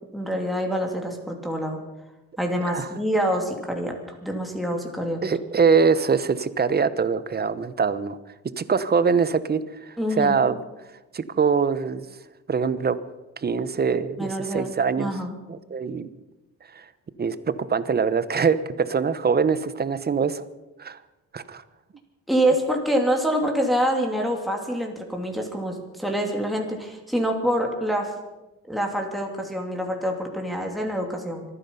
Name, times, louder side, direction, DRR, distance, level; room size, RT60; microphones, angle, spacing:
voice 1, 0.1-1.8 2.4-3.9 4.2-5.2 10.0-10.3 14.2-14.7 15.0-15.4 22.3-28.1 28.7-31.4, equal, ahead, 1 dB, 2.9 m, -26 dB
voice 2, 5.2-8.2 8.6-9.6 9.9-10.6 11.1-12.0 12.5-13.0 13.4-15.1 15.5-16.1 16.7-16.9 17.2-17.4 17.7-20.4 20.8-21.0 21.3-21.6, right 5 dB, 30° right, 14 dB, 1.0 m, -23 dB
25.5 x 10.0 x 5.5 m, 1.0 s
cardioid pair, 90°, 30 cm